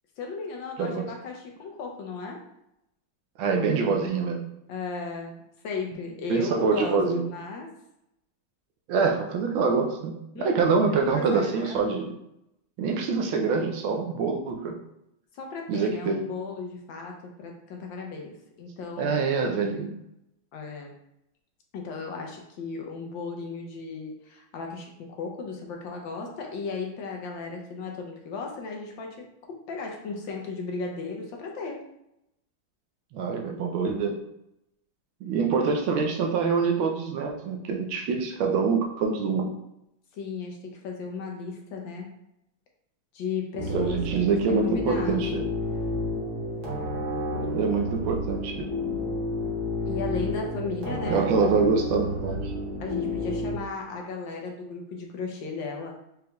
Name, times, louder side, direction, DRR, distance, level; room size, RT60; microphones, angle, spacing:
voice 1, 0.2-2.4 4.7-5.4 5.6-7.7 10.3-11.9 15.3-19.3 20.5-20.9 21.7-31.8 40.1-42.1 43.1-44.0 44.3-45.2 49.9-51.3 52.8-55.9, left 4 dB, 75° left, 1 dB, 1.3 m, -35 dB
voice 2, 3.4-4.4 6.3-7.2 8.9-12.1 12.8-14.7 15.7-16.2 19.0-19.9 33.1-34.2 35.2-39.5 43.7-45.4 47.5-48.5 51.1-52.5, right 5 dB, 75° right, 2 dB, 1.4 m, -25 dB
sound 1, 43.5-53.5, left 1 dB, 55° right, 1.3 m, -30 dB
5.2 x 3.3 x 2.3 m, 0.82 s
omnidirectional pair, 2.3 m